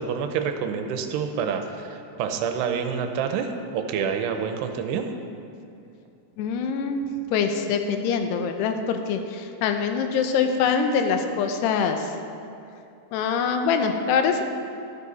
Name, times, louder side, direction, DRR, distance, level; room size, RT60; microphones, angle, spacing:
voice 1, 0.0-5.1, right 6 dB, 85° right, 6 dB, 2.8 m, -27 dB
voice 2, 6.4-12.1 13.1-14.4, left 6 dB, 80° left, 6 dB, 2.8 m, -24 dB
13.5 x 13.0 x 4.1 m, 2.6 s
omnidirectional pair, 4.8 m